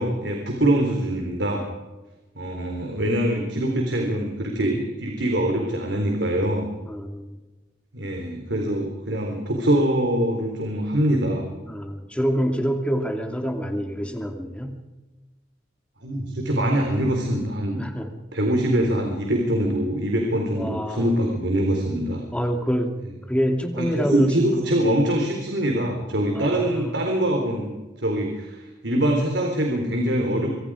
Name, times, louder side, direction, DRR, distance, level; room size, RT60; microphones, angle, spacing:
voice 1, 0.0-1.6 2.4-6.7 7.9-11.4 16.0-17.8 18.3-22.2 23.8-27.7 28.0-30.5, right 1 dB, 85° right, 2 dB, 4.0 m, -23 dB
voice 2, 6.8-7.3 11.7-14.8 17.8-18.1 20.3-21.2 22.3-22.9 23.3-24.8 26.3-27.1, equal, 5° left, 4 dB, 2.6 m, -26 dB
26.0 x 25.0 x 5.0 m, 1.2 s
head